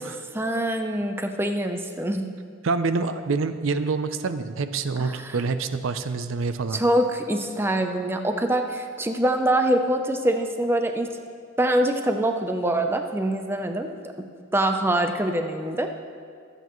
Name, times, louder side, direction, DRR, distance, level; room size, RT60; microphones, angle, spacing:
voice 1, 0.3-2.3 5.0-5.4 6.7-11.1 11.6-13.9 14.5-15.9, right 1 dB, 10° right, 5 dB, 0.6 m, -24 dB
voice 2, 2.6-6.8, right 4 dB, 70° right, 10 dB, 0.5 m, -26 dB
23.5 x 8.1 x 3.1 m, 2.2 s
head